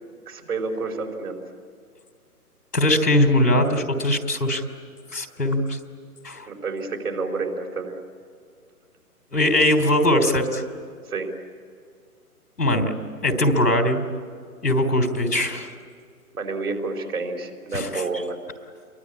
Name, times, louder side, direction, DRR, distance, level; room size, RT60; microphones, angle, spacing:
voice 1, 0.3-1.4 6.5-8.0 11.1-11.3 16.3-18.4, right 3 dB, 70° right, 2 dB, 4.8 m, -29 dB
voice 2, 2.7-4.6 5.1-5.8 6.2-6.5 9.3-10.6 12.6-12.9 13.2-14.0 14.6-15.7 17.7-18.2, left 1 dB, 90° left, 6 dB, 3.5 m, -21 dB
28.5 x 22.5 x 8.7 m, 2.1 s
figure-of-eight pair, 130°, 46 cm